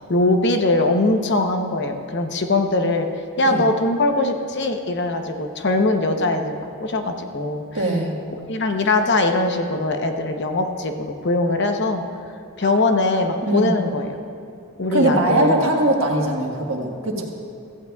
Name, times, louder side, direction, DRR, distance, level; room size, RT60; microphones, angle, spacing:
voice 1, 0.1-3.1 3.4-7.6 8.5-12.0 12.6-14.2 14.8-15.7, left 2 dB, 55° left, 5 dB, 0.8 m, -21 dB
voice 2, 7.7-8.2 13.4-13.7 14.9-17.2, right 1 dB, 65° right, 0 dB, 1.5 m, -21 dB
16.0 x 14.5 x 2.3 m, 2.6 s
head